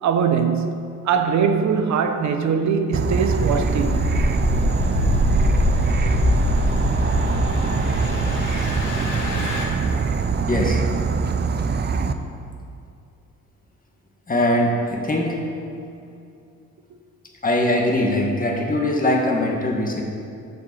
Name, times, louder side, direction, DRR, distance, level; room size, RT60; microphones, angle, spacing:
voice 1, 0.0-4.0, right 6 dB, 70° right, 0.9 m, -21 dB
Insect / Frog, 2.9-12.1, right 5 dB, 35° right, 0.6 m, -23 dB
Engine, 3.1-9.6, left 1 dB, 70° left, 2.1 m, -23 dB
voice 2, 10.5-10.8 14.3-15.4 17.4-20.0, left 1 dB, 30° left, 1.9 m, -21 dB
7.9 x 6.0 x 7.6 m
cardioid pair, 90°, 30 cm